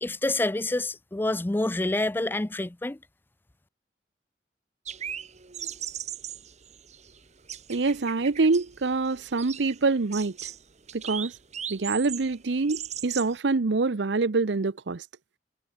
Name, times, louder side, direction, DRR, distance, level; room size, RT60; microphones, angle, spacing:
voice 1, 0.0-3.0, left 2 dB, 10° left, 0.4 m, -27 dB
sound 1, 4.9-13.4, right 9 dB, 40° right, 1.3 m, -39 dB
voice 2, 7.7-10.4 10.9-11.3 11.7-15.0, right 3 dB, 85° right, 0.7 m, -25 dB
head